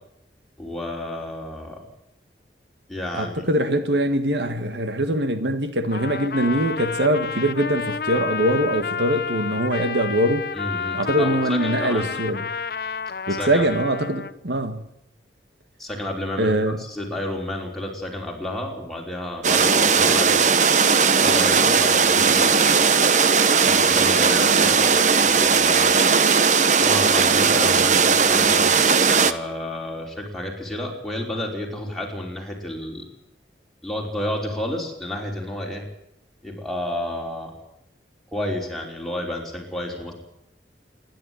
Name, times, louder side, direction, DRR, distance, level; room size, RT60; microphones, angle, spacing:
voice 1, 0.6-1.9 2.9-3.4 10.5-12.1 13.3-13.6 15.8-20.4 21.2-22.8 23.7-26.0 26.8-33.1 33.8-35.8 36.4-37.5 38.3-40.1, left 1 dB, ahead, 5.1 m, -31 dB
voice 2, 3.1-10.5 10.9-12.5 13.3-14.8 16.4-16.8, right 1 dB, 75° right, 1.9 m, -23 dB
Trumpet, 5.9-14.3, left 5 dB, 55° left, 0.8 m, -30 dB
sound 1, 19.4-29.3, right 5 dB, 45° right, 1.0 m, -17 dB
27.5 x 11.5 x 9.6 m
head